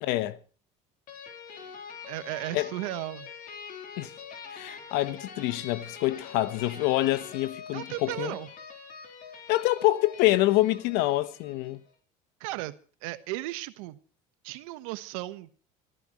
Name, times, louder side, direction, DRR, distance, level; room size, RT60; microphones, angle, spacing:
voice 1, 0.0-0.4 2.5-2.7 4.0-4.1 4.5-8.3 9.5-11.8, left 17 dB, 75° left, 1.1 m, -26 dB
sound 1, 1.1-11.8, left 6 dB, 55° left, 3.8 m, -44 dB
voice 2, 2.1-3.3 7.7-8.5 12.4-12.7 13.0-14.0 14.4-15.5, right 18 dB, 85° right, 1.2 m, -35 dB
27.5 x 14.0 x 3.1 m
supercardioid pair, 90°, 17 cm